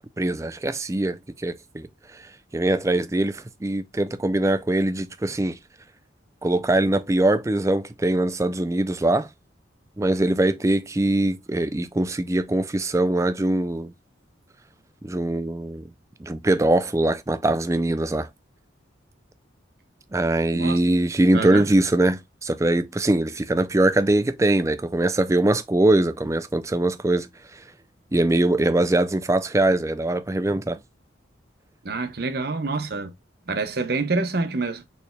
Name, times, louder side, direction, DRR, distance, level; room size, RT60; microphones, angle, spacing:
voice 1, 0.2-1.9 2.5-5.6 6.4-9.3 10.0-13.9 15.0-15.8 16.2-18.3 20.1-27.3 28.1-30.8, right 1 dB, 15° right, 0.4 m, -22 dB
voice 2, 21.3-21.7 31.8-33.1 33.5-34.8, right 3 dB, 55° right, 0.8 m, -27 dB
6.6 x 3.4 x 2.3 m
head